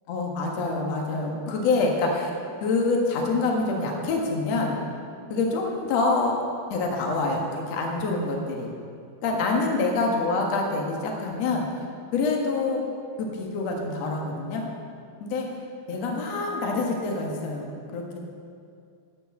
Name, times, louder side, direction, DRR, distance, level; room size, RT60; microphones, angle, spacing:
voice 1, 0.1-2.3 2.6-4.8 5.3-6.4 6.7-8.7 9.2-11.7 12.1-12.8 13.2-14.6 15.2-15.5 15.9-18.2, left 3 dB, 55° left, 0 dB, 2.3 m, -26 dB
11.5 x 8.6 x 7.7 m, 2.4 s
omnidirectional pair, 4.5 m